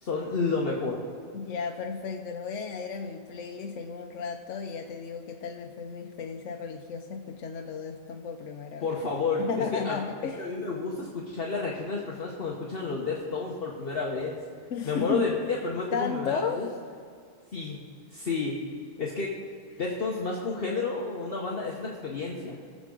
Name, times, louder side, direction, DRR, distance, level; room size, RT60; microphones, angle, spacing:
voice 1, 0.0-1.0 8.8-10.0 10.4-14.4 14.8-16.7 17.5-17.8 18.1-18.6 19.0-19.3 19.8-22.6, left 4 dB, 50° left, -2 dB, 1.2 m, -30 dB
voice 2, 1.3-9.0 9.4-10.5 14.7-15.5 15.9-16.7, left 6 dB, 70° left, 3 dB, 1.0 m, -34 dB
20.0 x 7.3 x 3.8 m, 2.2 s
omnidirectional pair, 1.4 m